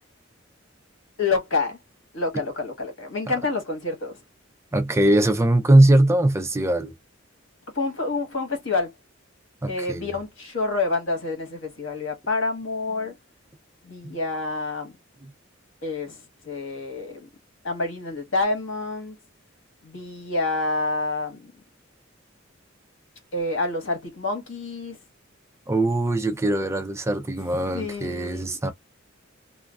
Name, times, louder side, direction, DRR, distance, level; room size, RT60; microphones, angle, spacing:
voice 1, 1.2-1.8 2.1-4.2 7.7-8.9 9.7-13.2 13.8-14.9 15.8-17.3 17.6-19.2 19.8-21.5 23.3-25.0 27.4-28.7, left 3 dB, 70° left, 1.3 m, -28 dB
voice 2, 4.7-6.9 9.6-10.1 15.2-15.3 25.7-28.7, right 1 dB, 15° right, 0.4 m, -21 dB
3.0 x 2.3 x 2.3 m
head